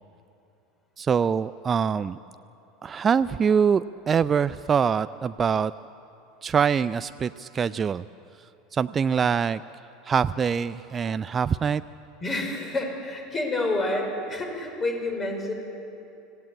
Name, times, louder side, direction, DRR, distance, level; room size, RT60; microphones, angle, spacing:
voice 1, 1.0-2.2 2.8-5.7 6.4-8.0 8.7-9.6 10.1-11.8, right 6 dB, 25° right, 14 dB, 0.4 m, -24 dB
voice 2, 12.2-15.5, left 2 dB, 25° left, 2 dB, 4.9 m, -28 dB
25.5 x 16.5 x 8.5 m, 2.7 s
figure-of-eight pair, 75°, 0 cm